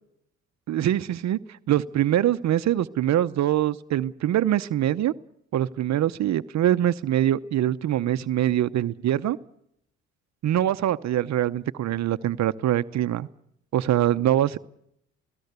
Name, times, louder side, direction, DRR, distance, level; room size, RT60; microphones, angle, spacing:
voice 1, 0.7-5.1 5.5-9.4 10.4-13.3 13.7-14.6, right 12 dB, 65° right, 13 dB, 0.7 m, -23 dB
20.0 x 17.5 x 8.1 m, 0.74 s
cardioid pair, 90°, 30 cm